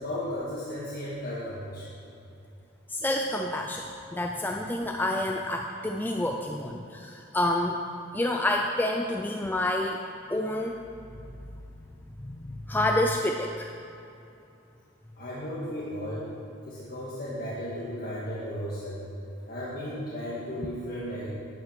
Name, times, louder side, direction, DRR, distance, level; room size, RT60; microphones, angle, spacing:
voice 1, 0.0-1.9 15.2-16.3 16.7-19.1 19.4-21.3, equal, 45° left, -9 dB, 1.7 m, -35 dB
voice 2, 2.9-7.8 8.1-10.0 10.3-10.8 11.3-11.4 12.2-13.7, left 1 dB, 10° left, 2 dB, 0.3 m, -28 dB
10.5 x 6.9 x 6.1 m, 2.7 s
head